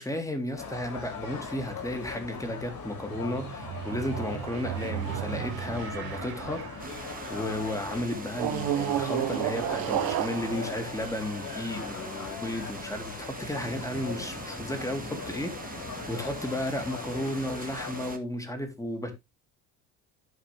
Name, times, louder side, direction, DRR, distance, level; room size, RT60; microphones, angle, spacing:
voice 1, 0.0-19.1, left 1 dB, 5° left, 2.3 m, -34 dB
sound 1, 0.5-18.2, left 5 dB, 50° left, 6.7 m, -40 dB
sound 2, 2.9-7.5 8.3-11.9, right 12 dB, 55° right, 1.1 m, -33 dB
sound 3, 6.8-18.2, right 4 dB, 20° right, 1.5 m, -43 dB
11.5 x 5.0 x 3.4 m
hypercardioid pair, 60°, 45 cm